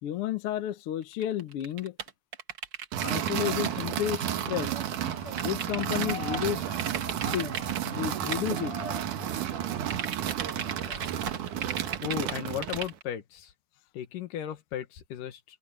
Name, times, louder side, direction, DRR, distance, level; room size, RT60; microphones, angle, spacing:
voice 1, 0.0-1.9 3.0-4.8 5.4-6.7 7.3-7.5 7.8-8.8, left 11 dB, 65° left, 1.5 m, -32 dB
sound 1, 1.1-3.4 3.6-3.7 5.4-6.5 6.8-7.8 8.3-8.4 9.9-13.0, right 7 dB, 45° right, 1.8 m, -35 dB
sound 2, 2.9-12.9, right 11 dB, 75° right, 2.7 m, -32 dB
sound 3, 3.2-11.9, left 5 dB, 45° left, 3.3 m, -46 dB
voice 2, 12.0-13.5 13.9-15.4, left 10 dB, 85° left, 3.1 m, -35 dB
omnidirectional pair, 3.7 m